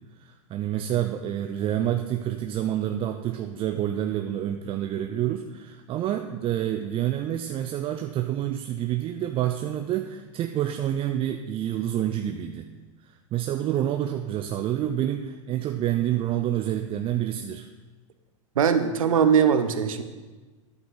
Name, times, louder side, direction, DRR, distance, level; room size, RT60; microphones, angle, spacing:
voice 1, 0.2-12.7 13.0-17.7, right 11 dB, 30° right, 6 dB, 0.5 m, -28 dB
voice 2, 18.6-20.0, right 7 dB, 85° right, 10 dB, 0.8 m, -20 dB
10.5 x 8.2 x 3.9 m, 1.3 s
hypercardioid pair, 105°, 17 cm